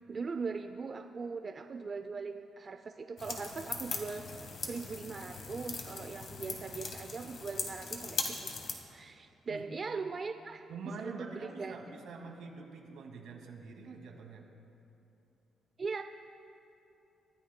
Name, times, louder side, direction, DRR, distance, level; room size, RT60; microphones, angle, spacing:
voice 1, 0.1-8.4 8.9-10.6 11.0-11.8 15.8-16.0, right 4 dB, 30° right, 7 dB, 0.4 m, -40 dB
sound 1, 3.2-8.7, left 4 dB, 45° left, 1.6 m, -40 dB
voice 2, 10.7-14.4, right 4 dB, 80° right, 1 dB, 2.1 m, -45 dB
29.5 x 14.5 x 2.2 m, 2.8 s
cardioid pair, 160°, 0 cm